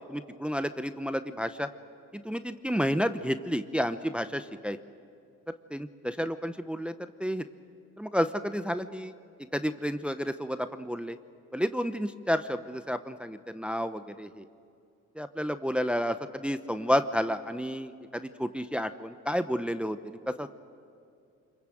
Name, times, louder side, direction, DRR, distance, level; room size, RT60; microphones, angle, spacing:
voice 1, 0.1-1.7 2.1-4.8 5.7-7.5 8.0-9.1 9.5-11.2 11.5-14.5 15.2-20.5, equal, 5° right, 10 dB, 0.8 m, -31 dB
26.0 x 22.5 x 7.8 m, 2.4 s
cardioid pair, 90°, 30 cm